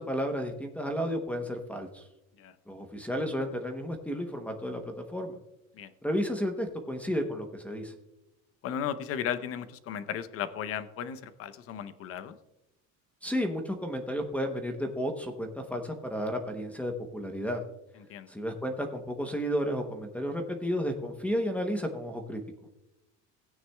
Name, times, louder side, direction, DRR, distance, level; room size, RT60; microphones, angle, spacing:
voice 1, 0.0-2.0 2.7-5.4 6.0-7.9 13.2-17.6 18.3-22.4, equal, 5° left, 5 dB, 0.8 m, -32 dB
voice 2, 8.6-12.4 18.1-18.3, left 9 dB, 45° left, 12 dB, 0.7 m, -35 dB
17.0 x 9.3 x 2.2 m, 0.94 s
cardioid pair, 160°, 31 cm